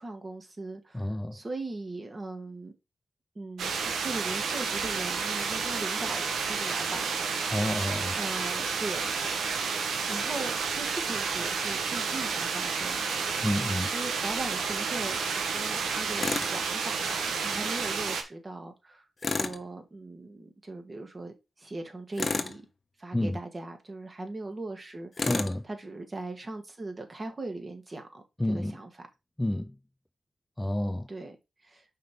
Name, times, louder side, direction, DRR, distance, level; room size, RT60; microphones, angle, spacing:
voice 1, 0.0-2.7 3.4-7.3 8.1-9.0 9.7-13.1 13.5-22.7 23.0-29.1 31.1-31.4 31.6-31.8, right 2 dB, 35° right, 2.0 m, -39 dB
voice 2, 0.9-1.4 7.5-8.1 13.4-13.9 23.1-23.4 25.2-25.6 28.4-28.8 29.4-29.7 30.6-31.1, left 1 dB, 10° left, 0.5 m, -29 dB
sound 1, 3.6-18.2, right 5 dB, 85° right, 1.1 m, -30 dB
Tools, 16.2-16.5 19.2-19.6 22.2-22.6 25.2-25.6, left 3 dB, 45° left, 0.9 m, -30 dB
5.6 x 3.7 x 5.0 m
cardioid pair, 55°, 0 cm